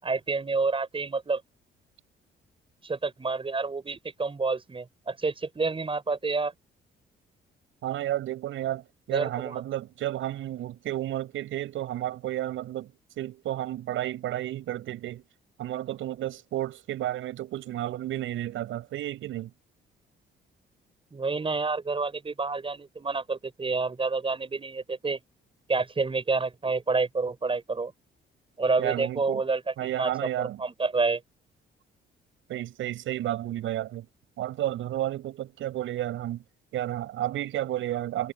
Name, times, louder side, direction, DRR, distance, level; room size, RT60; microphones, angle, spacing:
voice 1, 0.0-1.4 2.8-6.5 9.1-9.6 21.1-25.2 25.7-27.9 28.6-30.1 30.4-31.2, right 4 dB, 25° right, 5.6 m, -28 dB
voice 2, 7.8-12.9 13.2-15.2 15.6-19.5 28.8-29.4 29.8-30.6 32.5-34.1 34.4-36.4 36.7-38.3, right 13 dB, 80° right, 6.7 m, -32 dB
cardioid pair, 90°, 20 cm